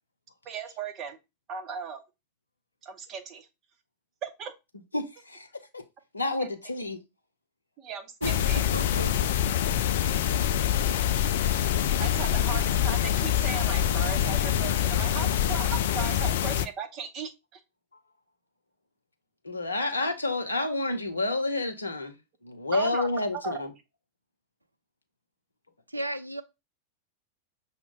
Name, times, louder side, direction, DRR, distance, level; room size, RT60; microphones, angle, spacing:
voice 1, 0.5-1.2 1.5-2.0 2.8-3.5 4.2-4.5 6.4-6.5 7.8-8.7 12.0-17.6 22.7-23.1 23.3-23.6, right 6 dB, 35° right, 0.8 m, -37 dB
voice 2, 4.9-5.5 5.7-5.8 6.1-7.0 19.4-22.2 22.4-23.7, left 2 dB, 80° left, 0.7 m, -29 dB
sound 1, 8.2-16.7, left 10 dB, 55° left, 0.3 m, -25 dB
voice 3, 8.7-9.1 25.9-26.4, right 1 dB, 85° right, 0.4 m, -33 dB
5.9 x 2.1 x 3.8 m
figure-of-eight pair, 90°, 0 cm